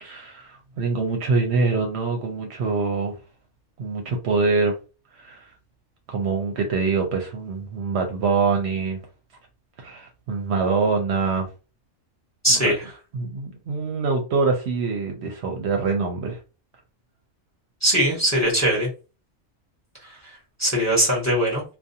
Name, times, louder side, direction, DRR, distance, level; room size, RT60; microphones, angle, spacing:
voice 1, 0.0-3.2 3.8-4.7 5.2-5.4 6.1-9.0 9.8-11.5 12.5-12.7 13.1-16.4, right 4 dB, 65° right, 0.8 m, -24 dB
voice 2, 12.4-12.9 17.8-18.9 20.2-20.3 20.6-21.6, equal, 15° left, 0.9 m, -21 dB
2.4 x 2.2 x 2.7 m
omnidirectional pair, 1.3 m